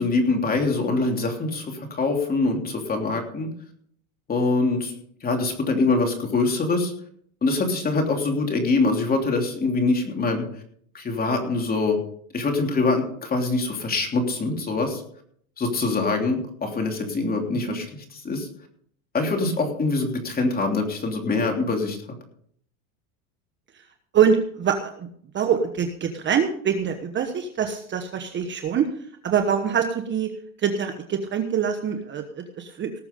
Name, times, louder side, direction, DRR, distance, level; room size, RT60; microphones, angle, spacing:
voice 1, 0.0-3.5 4.3-4.9 5.2-6.9 7.4-10.4 10.9-12.0 12.3-15.0 15.6-18.5 19.1-22.0, left 3 dB, 20° left, 3 dB, 3.1 m, -24 dB
voice 2, 24.1-25.1 25.3-28.9 29.2-30.3 30.6-33.0, right 7 dB, 25° right, 6 dB, 1.2 m, -24 dB
18.5 x 7.1 x 5.3 m, 0.62 s
supercardioid pair, 130°, 43 cm